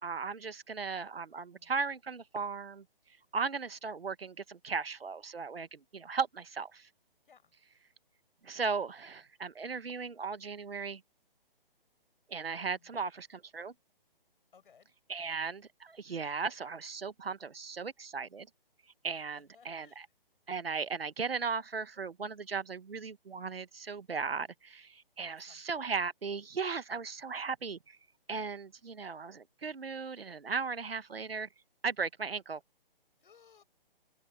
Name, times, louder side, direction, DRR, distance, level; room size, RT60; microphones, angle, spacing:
voice 1, 0.0-2.8 3.3-6.8 8.4-11.0 12.3-13.7 15.1-18.5 19.0-20.0 20.5-28.0 28.3-31.5 31.8-32.6, right 5 dB, 80° right, 1.7 m, -37 dB
voice 2, 12.7-13.1 14.5-14.9 15.2-15.4 19.1-20.1 25.2-25.6 33.2-33.6, left 6 dB, 60° left, 6.5 m, -62 dB
figure-of-eight pair, 145°, 29 cm